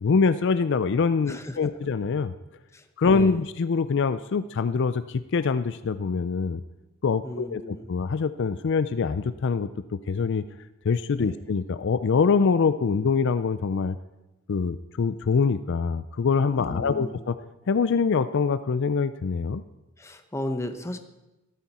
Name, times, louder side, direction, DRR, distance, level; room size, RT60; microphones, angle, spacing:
voice 1, 0.0-2.3 3.0-6.6 7.0-7.6 7.9-10.4 10.9-14.0 14.5-17.3 17.7-19.6, left 5 dB, 55° left, 13 dB, 0.4 m, -24 dB
voice 2, 1.2-1.7 2.7-3.4 7.2-7.9 11.2-11.4 16.7-17.3 20.0-21.0, left 1 dB, 15° left, 7 dB, 0.8 m, -35 dB
13.5 x 13.0 x 4.2 m, 1.0 s
head